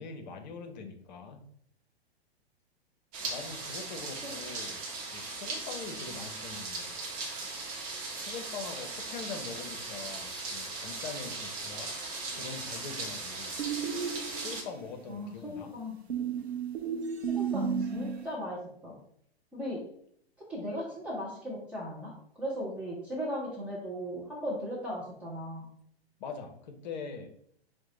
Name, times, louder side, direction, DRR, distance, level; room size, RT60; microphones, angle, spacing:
voice 1, 0.0-1.4 3.2-4.8 5.1-7.0 8.2-11.9 12.3-13.6 14.4-15.8 26.2-27.3, left 5 dB, 45° left, 6 dB, 0.7 m, -43 dB
sound 1, 3.1-14.6, right 3 dB, 35° right, 0.9 m, -38 dB
sound 2, 13.6-14.9 16.1-18.3, right 6 dB, 80° right, 0.6 m, -33 dB
voice 2, 15.1-16.0 17.3-19.0 19.5-19.8 20.5-25.7, equal, 5° right, -7 dB, 0.3 m, -37 dB
4.5 x 2.1 x 3.7 m, 0.67 s
figure-of-eight pair, 110°, 32 cm